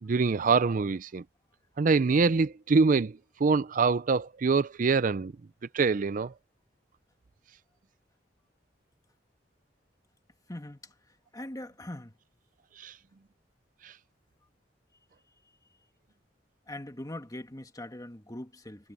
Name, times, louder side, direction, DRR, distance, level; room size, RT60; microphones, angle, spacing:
voice 1, 0.0-1.2 1.8-5.3 5.7-6.3 12.8-13.0 13.8-13.9, right 4 dB, 50° right, 0.5 m, -25 dB
voice 2, 10.5-12.1 16.7-18.9, left 1 dB, 20° left, 1.7 m, -42 dB
head